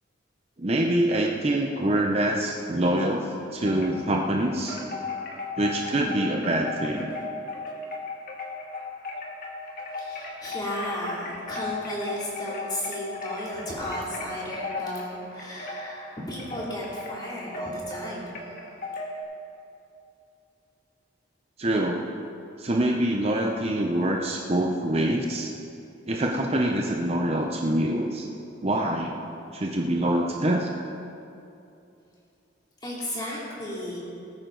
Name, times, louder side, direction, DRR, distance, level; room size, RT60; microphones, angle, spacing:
voice 1, 0.6-4.8 5.6-7.1 21.6-22.0 22.6-25.5 26.1-28.3 28.6-29.2 29.5-30.7, right 1 dB, 30° right, 1 dB, 0.7 m, -25 dB
Wind chime, 3.6-4.3 4.7-19.2, left 3 dB, 45° left, 1.7 m, -36 dB
voice 2, 9.9-18.4 32.8-34.0, left 1 dB, 20° left, -6 dB, 3.0 m, -34 dB
19.5 x 9.3 x 3.9 m, 2.7 s
head